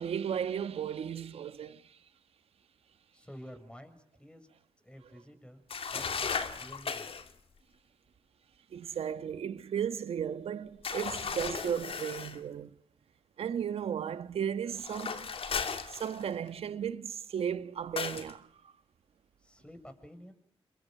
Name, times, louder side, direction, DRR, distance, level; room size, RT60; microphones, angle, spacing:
voice 1, 0.0-2.0 8.7-12.7 13.4-15.3 15.8-18.7, right 8 dB, 85° right, 1.4 m, -35 dB
voice 2, 3.1-4.5 4.8-5.6 5.9-7.1 19.4-20.3, equal, 10° left, 7.4 m, -50 dB
sound 1, 5.7-7.3 10.8-12.4 14.8-16.5 18.0-18.3, left 5 dB, 70° left, 2.4 m, -36 dB
28.5 x 22.0 x 9.5 m
cardioid pair, 45°, 10 cm